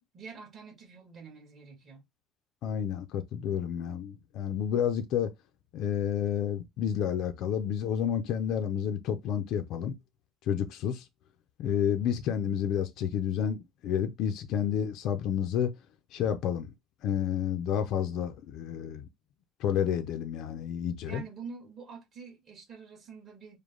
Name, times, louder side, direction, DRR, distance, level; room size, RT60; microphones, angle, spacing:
voice 1, 0.0-2.0 21.0-23.6, right 5 dB, 30° right, 1.8 m, -46 dB
voice 2, 2.6-5.3 5.7-10.0 10.5-11.0 11.6-15.7 16.1-16.7 17.0-19.1 19.6-21.2, left 9 dB, 55° left, 0.5 m, -30 dB
5.0 x 2.2 x 3.7 m
cardioid pair, 165°, 0 cm